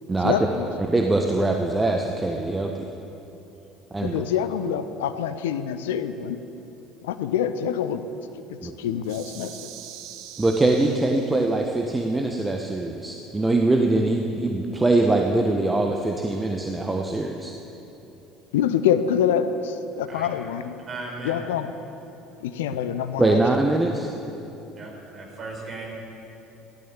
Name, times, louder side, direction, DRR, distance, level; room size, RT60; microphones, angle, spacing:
voice 1, 0.2-0.7 4.0-6.4 7.0-8.1 8.5-9.7 18.5-20.6 21.2-21.7 22.4-23.4, left 9 dB, 70° left, 11 dB, 0.7 m, -26 dB
voice 2, 0.9-2.9 3.9-4.2 8.6-8.7 10.4-17.5 23.2-24.1, right 2 dB, 15° right, 2 dB, 1.2 m, -23 dB
sound 1, 9.0-11.6, right 11 dB, 60° right, 0.9 m, -43 dB
voice 3, 20.9-21.4 24.7-25.9, right 3 dB, 40° right, -1 dB, 4.7 m, -36 dB
16.0 x 12.5 x 7.2 m, 2.9 s
figure-of-eight pair, 60°, 0 cm